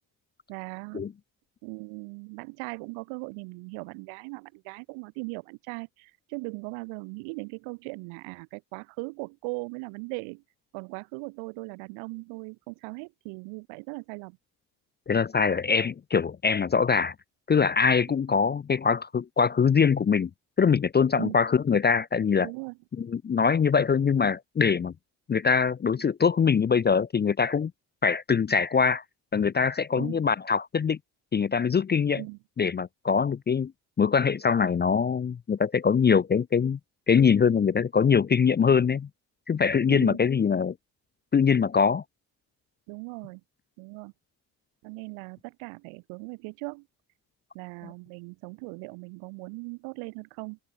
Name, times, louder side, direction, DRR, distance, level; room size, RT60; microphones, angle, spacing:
voice 1, 0.5-1.1 1.6-10.4 10.7-14.4 21.2-21.4 22.4-22.8 30.0-30.2 32.2-32.4 39.9-40.2 42.9-43.4 43.8-44.1 44.8-46.9 47.5-50.6, right 31 dB, 70° right, 2.7 m, -39 dB
voice 2, 15.1-17.1 17.5-20.3 20.6-22.5 23.0-24.9 25.3-27.7 28.0-29.0 29.3-31.0 31.3-32.2 32.6-33.7 34.0-36.8 37.1-39.1 39.5-40.7 41.3-42.0, left 6 dB, 20° left, 0.6 m, -23 dB
open air
hypercardioid pair, 50°, 50 cm